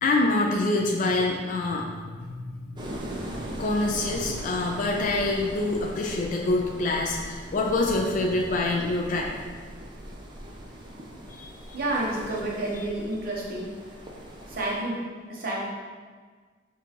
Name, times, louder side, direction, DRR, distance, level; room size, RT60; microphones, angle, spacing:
voice 1, 0.0-2.7 3.6-9.3 11.3-11.5, left 2 dB, 45° left, 0 dB, 0.4 m, -26 dB
sound 1, 2.7-14.8, equal, 25° right, 0.4 m, -40 dB
voice 2, 11.7-13.7 14.5-15.7, right 1 dB, 50° right, -3 dB, 0.8 m, -30 dB
5.2 x 2.4 x 2.8 m, 1.5 s
head